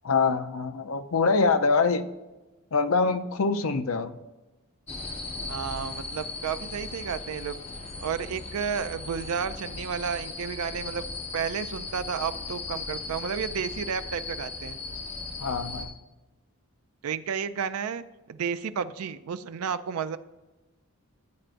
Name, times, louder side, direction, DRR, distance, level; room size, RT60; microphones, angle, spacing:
voice 1, 0.0-2.1 2.7-4.2 15.4-15.9, left 4 dB, 70° left, 10 dB, 0.6 m, -24 dB
sound 1, 4.9-15.8, left 3 dB, 30° left, 1.1 m, -37 dB
voice 2, 5.5-7.6 8.0-11.0 11.3-14.8 17.0-20.2, right 7 dB, 80° right, 12 dB, 0.4 m, -32 dB
14.5 x 7.6 x 2.6 m, 1.1 s
head